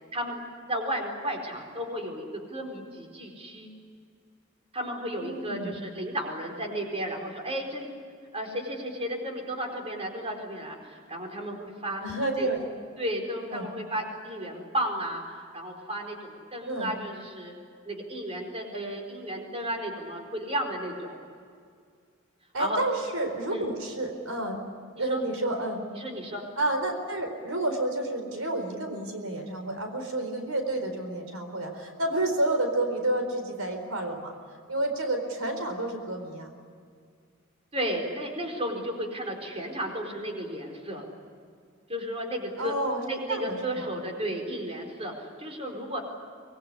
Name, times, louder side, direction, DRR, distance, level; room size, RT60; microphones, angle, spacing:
voice 1, 0.7-3.7 4.7-7.9 8.3-12.0 12.4-12.5 13.0-17.5 17.9-21.2 22.6-22.8 23.5-23.7 25.0-25.2 25.9-26.4 37.7-41.0 41.9-42.8 43.1-46.0, equal, 30° right, 2 dB, 4.4 m, -33 dB
voice 2, 5.1-5.8 12.0-12.6 13.5-13.7 16.6-16.9 22.5-24.6 25.0-25.8 26.6-34.3 34.7-36.5 42.6-43.0 43.3-43.9, right 2 dB, 90° right, 5 dB, 4.4 m, -30 dB
25.0 x 20.5 x 9.8 m, 2.2 s
head